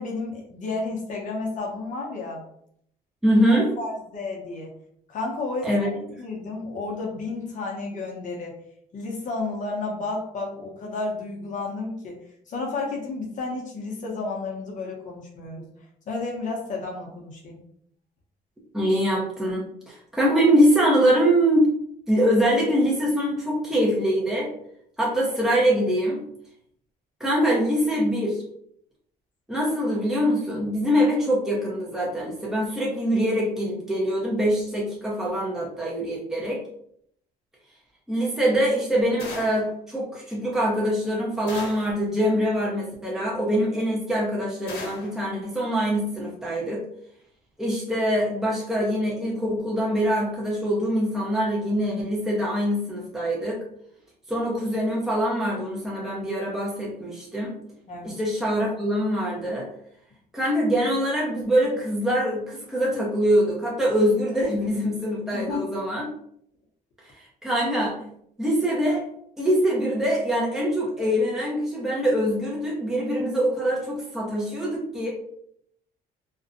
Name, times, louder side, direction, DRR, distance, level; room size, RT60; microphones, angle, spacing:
voice 1, 0.0-2.4 3.5-4.7 5.1-5.9 6.2-8.6 8.9-12.2 12.5-15.7 16.1-17.6 57.9-58.2 65.3-65.7, left 3 dB, 50° left, -1 dB, 0.6 m, -32 dB
voice 2, 3.2-3.7 5.6-5.9 18.7-21.7 22.1-24.5 25.0-26.2 27.2-28.4 29.5-36.6 38.1-46.8 47.6-53.6 54.3-57.6 58.0-59.7 60.3-66.0 67.0-68.1 68.4-69.1 69.4-75.1, equal, 5° right, -5 dB, 0.7 m, -24 dB
sound 1, 39.2-39.7 41.5-42.0 44.7-45.2, left 3 dB, 80° left, 0.9 m, -37 dB
2.5 x 2.2 x 2.5 m, 0.70 s
cardioid pair, 110°, 17 cm